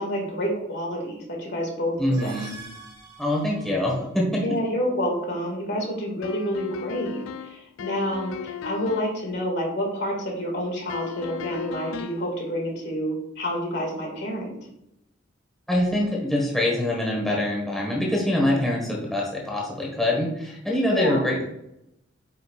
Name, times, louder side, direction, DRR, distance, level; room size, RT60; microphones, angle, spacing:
voice 1, 0.0-2.3 4.4-14.6 20.8-21.2, equal, 60° left, 0 dB, 2.2 m, -29 dB
voice 2, 2.0-2.5 3.2-4.4 15.7-21.4, left 1 dB, ahead, -3 dB, 1.5 m, -24 dB
sound 1, 2.0-4.2, right 3 dB, 15° right, 1.2 m, -45 dB
sound 2, 6.2-9.2 10.9-12.3, left 7 dB, 80° left, 0.3 m, -36 dB
8.9 x 5.4 x 2.5 m, 0.83 s
head